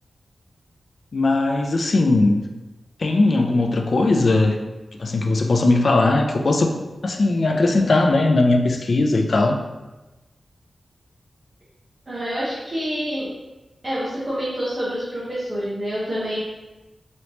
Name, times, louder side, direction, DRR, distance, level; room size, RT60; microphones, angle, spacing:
voice 1, 1.1-2.4 3.0-4.6 5.0-6.7 7.0-9.6, left 2 dB, 50° left, 3 dB, 0.3 m, -19 dB
voice 2, 12.1-13.3 13.8-16.4, equal, 30° right, -10 dB, 0.9 m, -27 dB
3.1 x 2.8 x 2.9 m, 1.1 s
wide cardioid pair, 145°, 0 cm